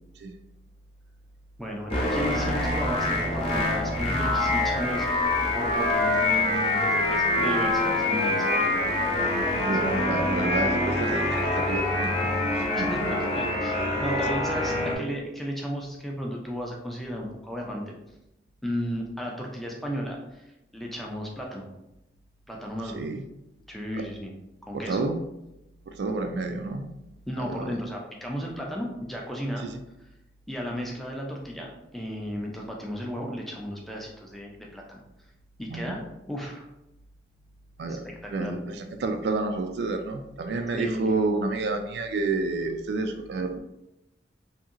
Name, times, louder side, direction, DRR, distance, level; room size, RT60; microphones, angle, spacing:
voice 1, 1.6-9.0 9.6-10.1 12.7-17.8 18.6-20.5 20.7-21.7 22.5-23.0 23.7-24.3 24.7-25.1 27.3-29.7 30.5-35.0 35.6-36.0 36.3-36.6 38.0-38.5 40.7-41.1, equal, ahead, -1 dB, 0.4 m, -34 dB
sound 1, 1.9-15.0, left 1 dB, 35° left, 0.7 m, -25 dB
voice 2, 9.7-12.3 12.5-12.9 22.9-23.2 24.0-24.1 24.7-25.2 25.9-26.9 27.4-27.8 35.7-36.0 37.8-43.6, right 3 dB, 70° right, 6 dB, 0.3 m, -30 dB
2.7 x 2.7 x 2.5 m, 0.89 s
head